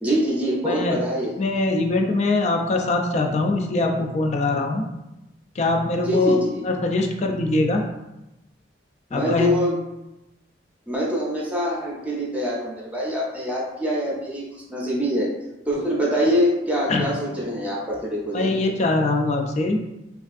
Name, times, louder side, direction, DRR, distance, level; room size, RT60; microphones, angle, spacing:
voice 1, 0.0-1.3 6.0-6.6 9.1-9.8 10.9-15.3 15.7-18.5, equal, 10° right, -5 dB, 0.7 m, -24 dB
voice 2, 0.6-1.0 1.4-4.8 5.6-7.8 9.1-9.5 16.9-17.1 18.3-19.8, left 2 dB, 40° left, 3 dB, 0.3 m, -22 dB
3.3 x 2.4 x 2.5 m, 0.95 s
head